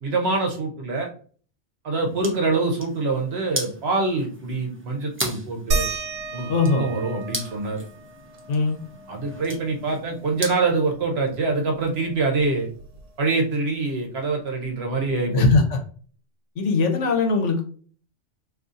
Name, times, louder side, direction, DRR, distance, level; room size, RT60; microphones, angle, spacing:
voice 1, 0.0-1.1 1.8-5.8 6.3-7.8 9.1-12.7 13.2-15.4, right 3 dB, 65° right, 2 dB, 0.9 m, -25 dB
sound 1, 1.9-10.8, right 1 dB, 15° right, 0.5 m, -37 dB
sound 2, 5.7-10.8 11.2-11.3 11.6-13.4 14.6-14.7 15.5-15.6, right 3 dB, 85° right, 1.0 m, -33 dB
voice 2, 6.5-6.9 8.5-8.8 15.3-15.8 16.6-17.7, left 3 dB, 85° left, 3 dB, 1.1 m, -20 dB
2.7 x 2.6 x 3.6 m, 0.43 s
omnidirectional pair, 1.2 m